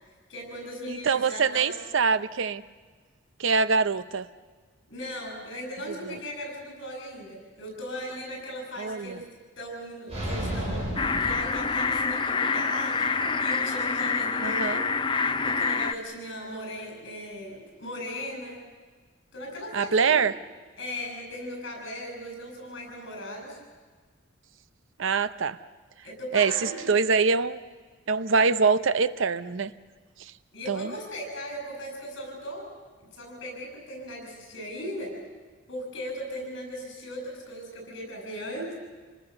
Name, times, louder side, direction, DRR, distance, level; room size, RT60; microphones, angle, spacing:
voice 1, 0.3-1.7 4.9-9.2 9.6-15.0 15.4-18.6 19.3-20.2 20.8-23.6 26.0-26.9 30.5-32.6 33.0-35.1 35.7-38.7, equal, 60° left, 2 dB, 7.9 m, -38 dB
voice 2, 0.9-2.6 3.4-4.3 6.0-6.2 8.8-9.2 14.4-14.8 19.7-20.3 25.0-25.6 26.3-27.6 28.1-29.7 30.2-30.3 30.7-30.9, right 5 dB, 65° right, 14 dB, 0.6 m, -24 dB
sound 1, 10.1-12.3, equal, 30° right, 5.7 m, -33 dB
sound 2, 11.0-15.9, left 4 dB, 25° left, 0.6 m, -26 dB
27.5 x 20.0 x 6.9 m, 1.4 s
head